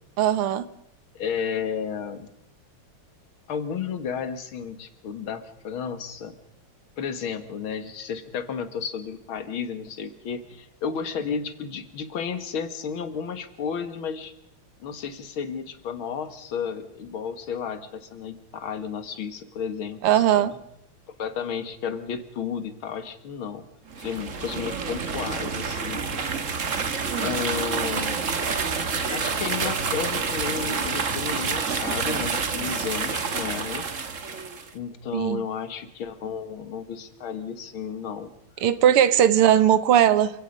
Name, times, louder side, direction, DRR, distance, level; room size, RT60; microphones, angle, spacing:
voice 1, 0.2-0.7 20.0-20.5 35.1-35.4 38.6-40.3, right 10 dB, 85° right, 14 dB, 2.0 m, -19 dB
voice 2, 1.1-2.3 3.5-6.4 7.0-14.3 14.8-20.6 21.2-23.6 24.0-26.1 27.2-28.3 29.1-33.9 34.2-34.4 34.7-38.3 39.4-39.5, left 6 dB, 70° left, 10 dB, 2.4 m, -32 dB
sound 1, 23.9-34.7, right 5 dB, 40° right, 1.6 m, -28 dB
28.5 x 17.0 x 5.4 m, 0.79 s
omnidirectional pair, 2.4 m